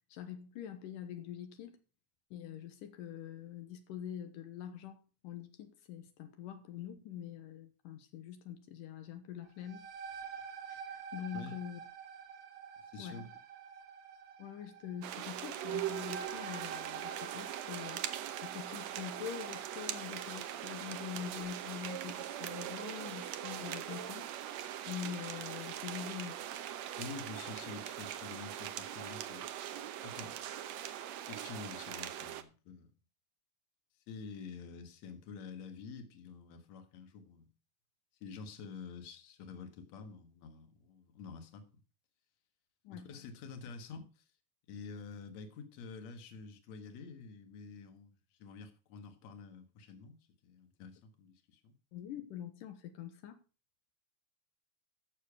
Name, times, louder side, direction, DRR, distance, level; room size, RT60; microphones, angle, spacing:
voice 1, 0.1-1.8 2.3-9.8 10.7-11.8 13.0-13.2 14.4-18.0 18.4-24.3 24.9-26.4 42.8-43.1 51.9-53.4, left 9 dB, 85° left, 2.6 m, -45 dB
sound 1, 9.4-20.9, right 7 dB, 50° right, 2.1 m, -48 dB
voice 2, 12.8-13.3 27.0-29.5 30.0-30.3 31.3-32.9 34.1-37.5 38.2-41.7 42.9-44.2 44.7-51.7, left 5 dB, 60° left, 2.7 m, -48 dB
sound 2, 15.0-32.4, right 11 dB, 70° right, 1.8 m, -41 dB
14.0 x 7.0 x 4.9 m
omnidirectional pair, 3.8 m